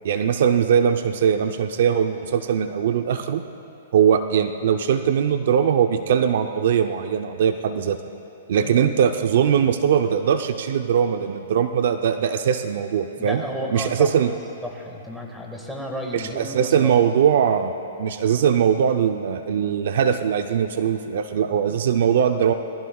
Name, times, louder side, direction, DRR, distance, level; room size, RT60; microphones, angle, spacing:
voice 1, 0.0-3.4 3.9-8.0 8.5-13.4 13.7-14.3 16.1-17.7 18.0-22.5, right 8 dB, 60° right, 8 dB, 0.6 m, -21 dB
voice 2, 13.2-14.1 14.6-17.1, equal, ahead, -1 dB, 1.8 m, -32 dB
26.5 x 19.0 x 2.4 m, 2.7 s
hypercardioid pair, 155°, 0 cm